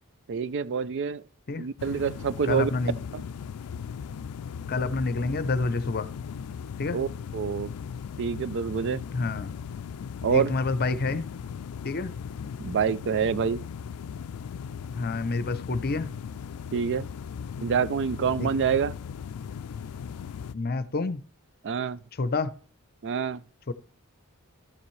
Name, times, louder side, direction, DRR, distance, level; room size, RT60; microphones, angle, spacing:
voice 1, 0.3-1.2 1.6-2.7 3.1-3.2 6.9-7.1 7.3-7.7 8.2-9.0 10.2-10.5 12.6-13.6 16.7-17.1 17.6-18.9 21.6-22.0 23.0-23.4, right 6 dB, 55° right, 0.4 m, -26 dB
sound 1, 1.8-20.5, left 7 dB, 80° left, 0.4 m, -38 dB
voice 2, 2.4-2.9 4.7-6.1 6.8-7.0 9.1-9.5 10.3-11.3 11.8-12.1 14.9-16.1 18.4-18.5 20.5-21.2 22.2-22.5 23.7-23.8, left 3 dB, 45° left, 0.6 m, -28 dB
13.0 x 7.2 x 3.2 m
head